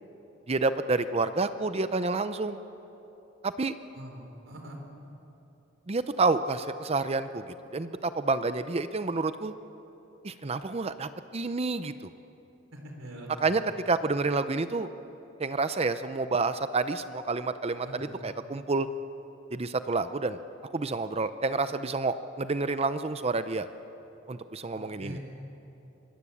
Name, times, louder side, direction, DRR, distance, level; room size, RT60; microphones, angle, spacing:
voice 1, 0.5-2.6 3.4-3.7 5.9-7.4 7.7-9.5 10.2-11.9 13.4-14.9 15.4-18.9 19.5-20.4 20.7-23.7 24.3-25.2, right 3 dB, 30° right, 11 dB, 0.6 m, -29 dB
voice 2, 3.9-4.8 12.7-13.6 17.8-18.1 24.7-25.2, equal, 70° right, 2 dB, 4.0 m, -43 dB
25.0 x 21.0 x 8.5 m, 3.0 s
head